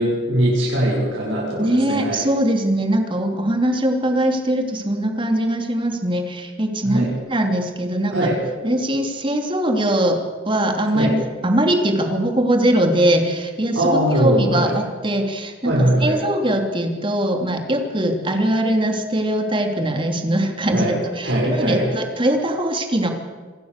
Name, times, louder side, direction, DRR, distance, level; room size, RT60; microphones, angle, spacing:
voice 1, 0.0-2.3 6.8-7.1 8.1-8.4 10.9-11.1 13.8-14.7 15.6-16.2 20.7-20.9 21.2-21.9, right 1 dB, 90° right, -6 dB, 6.9 m, -20 dB
voice 2, 1.5-8.2 8.6-11.2 11.4-23.1, right 1 dB, 25° right, 4 dB, 3.0 m, -21 dB
26.5 x 16.5 x 6.7 m, 1.5 s
head